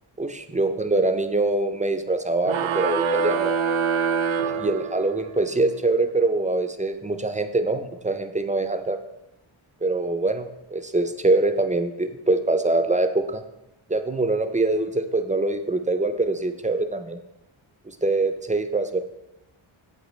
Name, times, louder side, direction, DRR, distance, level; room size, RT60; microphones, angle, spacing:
voice 1, 0.2-3.5 4.4-9.0 9.8-13.4 13.9-17.2 17.9-19.0, right 2 dB, 15° right, 8 dB, 0.3 m, -24 dB
sound 1, 2.4-5.3, right 5 dB, 70° right, 0.6 m, -25 dB
8.2 x 7.9 x 3.1 m, 0.90 s
wide cardioid pair, 150°, 50 cm